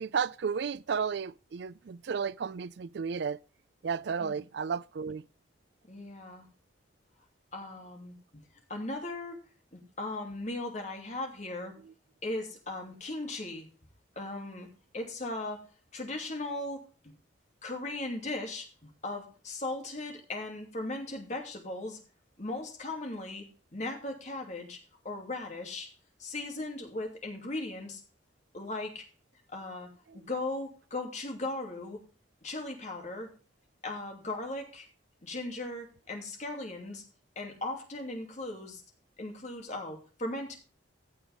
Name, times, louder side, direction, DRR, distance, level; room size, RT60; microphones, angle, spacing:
voice 1, 0.0-3.4 3.8-5.2 30.1-30.2, right 6 dB, 60° right, 0.4 m, -33 dB
voice 2, 5.9-6.5 7.5-8.4 8.7-9.4 9.7-11.7 12.2-13.7 14.2-14.7 14.9-15.6 15.9-17.1 17.6-22.0 22.4-23.4 23.7-24.8 25.0-25.9 26.2-28.0 28.5-29.0 29.5-29.9 30.1-32.0 32.4-33.3 33.8-34.9 35.2-37.0 37.4-38.8 39.2-40.6, left 2 dB, 40° left, 2.7 m, -38 dB
15.0 x 7.0 x 3.6 m
head